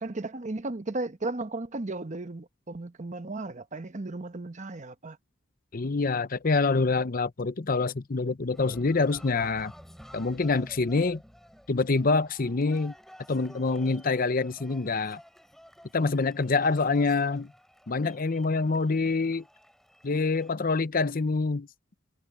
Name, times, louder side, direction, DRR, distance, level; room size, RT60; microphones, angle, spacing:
voice 1, 0.0-5.2, right 2 dB, 40° right, 1.0 m, -35 dB
voice 2, 5.7-9.7 10.1-11.2 11.7-12.9 13.3-15.2 15.9-17.5 17.9-19.4 20.0-21.7, left 3 dB, 45° left, 0.7 m, -26 dB
Cheering, 8.5-20.5, equal, ahead, 7.0 m, -52 dB
head